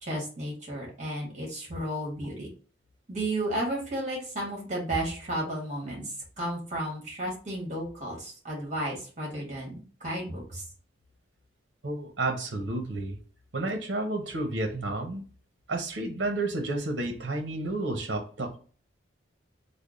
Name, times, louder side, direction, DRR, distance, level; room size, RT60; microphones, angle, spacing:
voice 1, 0.0-2.5 3.1-10.6, right 1 dB, 40° right, -2 dB, 1.5 m, -33 dB
voice 2, 11.8-13.2 13.5-15.2 15.7-18.6, right 2 dB, 70° right, 4 dB, 0.7 m, -31 dB
3.4 x 2.1 x 3.6 m, 0.40 s
head